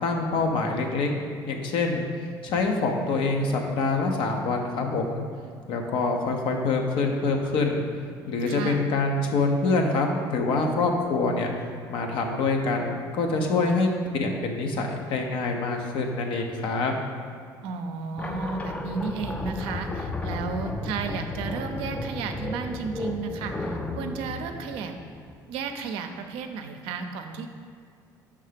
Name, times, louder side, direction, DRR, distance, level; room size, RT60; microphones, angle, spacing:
voice 1, 0.0-1.1 1.5-2.1 2.4-5.2 5.7-7.8 8.3-11.5 11.9-16.9, left 3 dB, 65° left, 2 dB, 0.8 m, -25 dB
voice 2, 8.5-8.8 17.6-24.9 25.5-27.5, right 5 dB, 75° right, 6 dB, 0.5 m, -33 dB
sound 1, 18.2-25.6, left 2 dB, 15° left, 0.5 m, -34 dB
5.5 x 3.5 x 5.0 m, 2.2 s
supercardioid pair, 80°, 9 cm